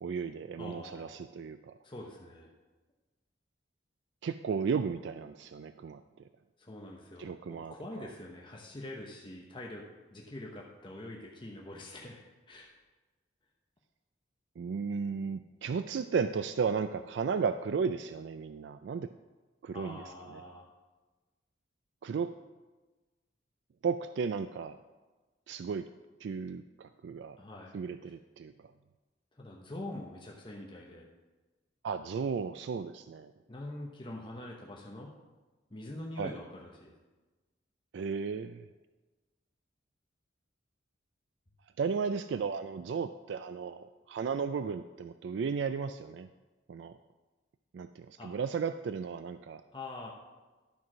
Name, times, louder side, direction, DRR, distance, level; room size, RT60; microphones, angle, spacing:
voice 1, 0.0-1.8 4.2-6.0 7.2-8.1 14.6-19.1 19.6-20.0 20.3-20.4 22.0-22.3 23.8-24.8 25.5-25.9 26.2-27.4 27.7-28.7 31.8-33.3 36.2-36.3 37.9-38.6 41.8-46.3 46.7-47.0 47.7-49.6, right 5 dB, 70° right, 10 dB, 0.3 m, -34 dB
voice 2, 0.6-1.1 1.8-2.5 6.6-12.7 19.7-20.7 27.4-27.7 29.4-31.1 33.5-35.2 35.7-36.9 48.2-48.3 49.7-50.1, left 1 dB, 25° left, -1 dB, 0.9 m, -44 dB
12.0 x 4.6 x 6.1 m, 1.2 s
head